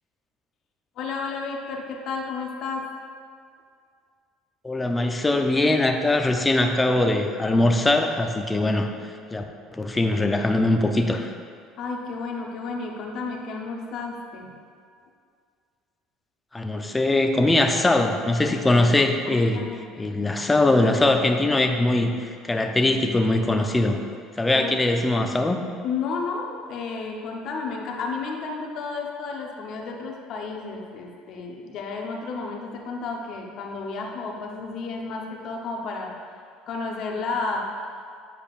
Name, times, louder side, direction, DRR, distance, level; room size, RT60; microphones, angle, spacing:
voice 1, 1.0-2.9 11.8-14.5 19.3-19.9 24.5-24.8 25.8-36.1 36.7-37.7, left 4 dB, 60° left, 1 dB, 0.9 m, -32 dB
voice 2, 4.6-8.9 9.3-9.4 9.7-11.3 16.5-19.6 20.0-24.0 24.4-25.6, left 2 dB, 15° left, 4 dB, 0.6 m, -21 dB
8.9 x 5.0 x 2.5 m, 2.1 s
supercardioid pair, 80°, 0 cm